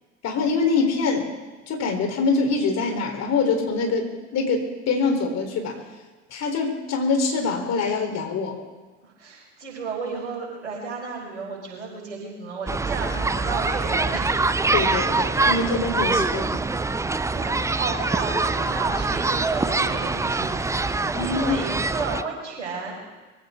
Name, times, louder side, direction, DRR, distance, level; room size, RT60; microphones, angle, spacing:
voice 1, 0.2-1.3 1.7-5.8 6.3-8.6 14.7-16.6 21.1-21.6, left 4 dB, 45° left, 3 dB, 3.7 m, -24 dB
voice 2, 9.0-14.3 15.7-16.2 17.3-23.0, right 4 dB, 80° right, -2 dB, 5.3 m, -33 dB
sound 1, 12.7-22.2, right 3 dB, 10° right, 0.6 m, -24 dB
23.0 x 15.5 x 3.7 m, 1.3 s
figure-of-eight pair, 60°, 35 cm